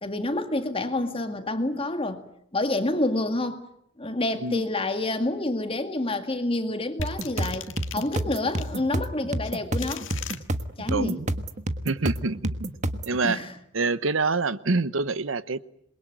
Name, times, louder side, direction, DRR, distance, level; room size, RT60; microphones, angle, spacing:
voice 1, 0.0-2.2 2.5-3.7 4.0-7.7 7.9-10.1 10.8-11.2 13.2-13.5, left 2 dB, 30° left, 2.1 m, -28 dB
sound 1, 7.0-8.7 9.4-10.4, left 9 dB, 80° left, 1.8 m, -38 dB
sound 2, 7.0-13.2, right 1 dB, 40° right, 1.4 m, -30 dB
voice 2, 10.9-11.3 11.8-12.5 13.1-13.4 13.7-15.6, right 3 dB, 85° right, 1.0 m, -26 dB
27.5 x 22.5 x 9.1 m
head